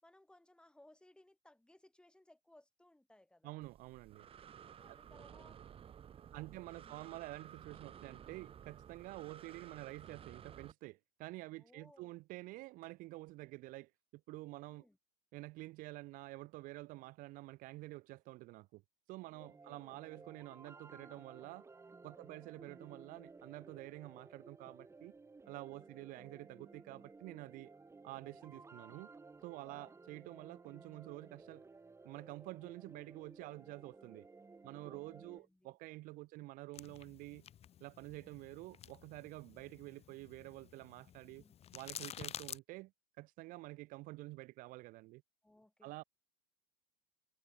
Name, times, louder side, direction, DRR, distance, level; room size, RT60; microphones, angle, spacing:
voice 1, 0.0-3.6 4.8-5.6 6.3-7.1 11.6-12.2 14.7-15.0 19.3-20.1 22.1-22.5 25.7-26.3 29.6-30.0 34.7-35.8 41.4-41.6 45.4-45.9, left 1 dB, 5° left, 4.3 m, -65 dB
voice 2, 3.4-4.3 4.9-5.0 6.3-13.9 14.3-14.9 15.3-18.8 19.1-21.7 22.0-25.1 25.5-27.7 28.0-29.1 29.4-31.6 32.0-34.3 34.6-37.4 37.8-41.4 41.7-42.9 43.2-45.2 45.8-46.0, right 20 dB, 50° right, 0.8 m, -49 dB
Breathing, 3.6-10.7, right 8 dB, 30° right, 2.1 m, -55 dB
sound 1, 19.4-35.4, right 3 dB, 15° right, 4.0 m, -57 dB
sound 2, 36.7-42.6, left 10 dB, 35° left, 1.8 m, -51 dB
hypercardioid pair, 95°, 19 cm